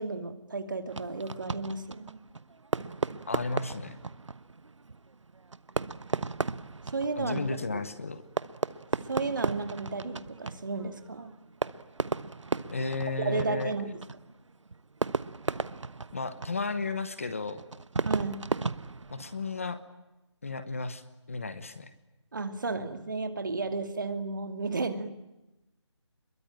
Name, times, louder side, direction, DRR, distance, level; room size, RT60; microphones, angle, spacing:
voice 1, 0.0-2.2 6.9-7.8 9.1-11.3 13.2-14.0 18.0-18.5 22.3-25.2, right 3 dB, 40° right, 8 dB, 2.4 m, -33 dB
Fireworks, 0.9-19.7, right 4 dB, 75° right, 1.1 m, -36 dB
voice 2, 3.3-4.0 7.2-8.2 12.7-13.7 16.1-17.6 19.1-19.8 20.4-21.0 21.3-21.9, left 3 dB, 30° left, 12 dB, 1.1 m, -33 dB
27.5 x 22.5 x 9.0 m, 0.98 s
figure-of-eight pair, 180°, 16 cm